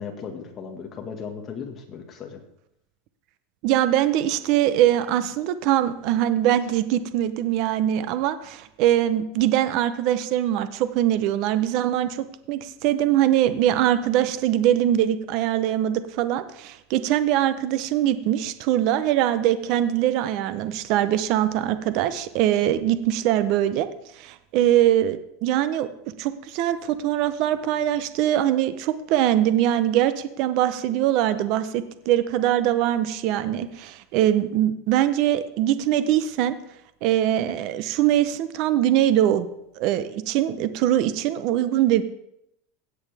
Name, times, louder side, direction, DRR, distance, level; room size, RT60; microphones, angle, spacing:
voice 1, 0.0-2.4, left 6 dB, 25° left, 3 dB, 1.7 m, -36 dB
voice 2, 3.6-23.9 24.2-25.9 26.2-36.6 37.0-39.5 39.8-42.0, right 12 dB, 50° right, 12 dB, 0.7 m, -22 dB
17.0 x 7.9 x 3.5 m, 0.79 s
supercardioid pair, 150°, 0 cm